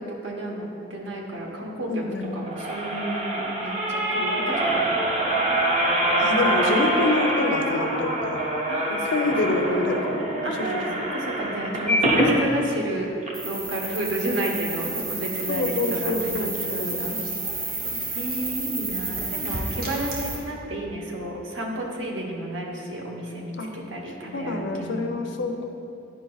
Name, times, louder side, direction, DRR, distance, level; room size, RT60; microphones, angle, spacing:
voice 1, 0.0-2.0 2.3-5.0 5.3-5.6 8.7-9.1 10.4-13.1 13.4-17.2 17.6-17.8 18.1-25.2, right 1 dB, 70° right, -1 dB, 1.0 m, -32 dB
voice 2, 1.9-2.4 6.2-8.4 8.9-10.2 10.6-11.0 15.5-17.0 23.6-23.7 24.3-25.7, left 2 dB, 70° left, 4 dB, 0.6 m, -26 dB
sound 1, 2.2-12.4 12.9-13.0 13.2-13.3, right 1 dB, 35° right, 0.8 m, -25 dB
sound 2, 13.3-20.4, right 2 dB, 55° right, 1.3 m, -31 dB
10.0 x 5.1 x 2.3 m, 2.7 s
head